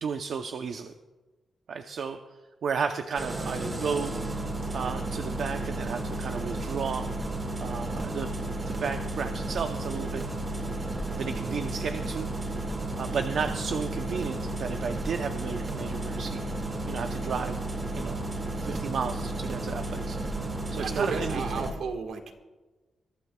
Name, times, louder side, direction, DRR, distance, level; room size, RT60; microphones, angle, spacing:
voice 1, 0.0-0.9 1.7-2.2 2.6-4.1 4.7-7.1 7.6-8.4 8.6-10.2 11.1-12.3 13.0-16.4 16.9-17.6 17.9-18.3 18.5-20.2 20.7-21.6, right 6 dB, 60° right, 6 dB, 0.7 m, -33 dB
Engine starting, 3.1-21.7, right 2 dB, 25° right, 2.1 m, -33 dB
voice 2, 20.8-22.3, right 5 dB, 85° right, 5 dB, 1.5 m, -33 dB
22.5 x 15.0 x 2.3 m, 1.2 s
wide cardioid pair, 165°, 0 cm